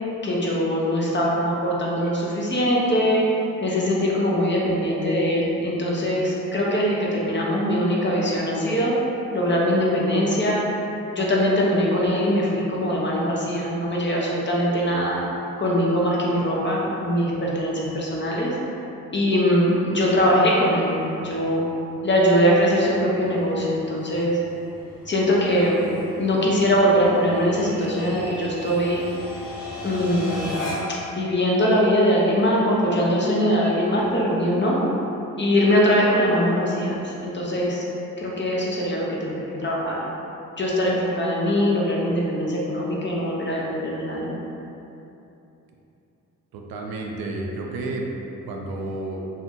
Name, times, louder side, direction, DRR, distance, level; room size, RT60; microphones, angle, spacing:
voice 1, 0.2-3.2 3.6-8.9 9.3-10.6 11.1-15.2 15.6-18.5 19.1-21.6 22.0-24.4 25.1-25.8 26.2-29.0 29.8-30.5 31.1-34.8 35.4-37.8 38.2-40.0 40.6-44.3, equal, 30° left, -4 dB, 0.7 m, -22 dB
sound 1, 20.8-31.1, left 1 dB, 80° left, 0.7 m, -38 dB
voice 2, 46.5-48.2 48.4-49.3, right 2 dB, 70° right, 0 dB, 0.5 m, -31 dB
2.5 x 2.0 x 3.5 m, 2.9 s
hypercardioid pair, 40°, 38 cm